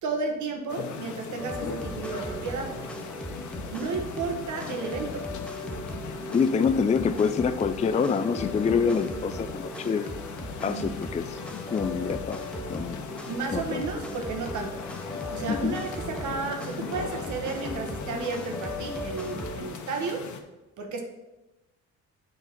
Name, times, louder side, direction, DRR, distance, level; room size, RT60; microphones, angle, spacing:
voice 1, 0.0-2.8 3.7-5.3 10.6-11.0 13.3-14.9 15.3-20.3 20.8-21.0, right 4 dB, 75° right, 3 dB, 1.4 m, -33 dB
sound 1, 0.7-20.4, left 7 dB, 75° left, 0.9 m, -40 dB
sound 2, 1.4-19.6, equal, 5° left, 1.0 m, -38 dB
voice 2, 6.3-10.1 10.6-11.4 11.7-12.4 12.7-13.1 13.5-13.8 15.5-15.8, left 6 dB, 25° left, 10 dB, 0.4 m, -26 dB
7.1 x 3.9 x 5.9 m, 1.0 s
cardioid pair, 90°, 30 cm